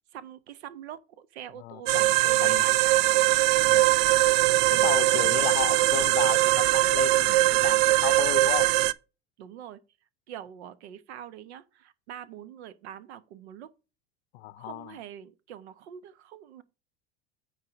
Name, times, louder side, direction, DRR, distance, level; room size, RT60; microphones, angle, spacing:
voice 1, 0.1-3.2 4.7-4.9 5.2-5.4 9.4-9.8 10.3-13.7 14.5-16.6, right 10 dB, 75° right, 1.1 m, -44 dB
voice 2, 1.6-2.1 2.4-2.7 3.6-3.9 4.7-8.7 14.3-15.0, left 18 dB, 75° left, 0.6 m, -34 dB
sound 1, 1.9-8.9, right 18 dB, 60° right, 0.6 m, -21 dB
9.6 x 3.8 x 6.1 m
hypercardioid pair, 80°, 33 cm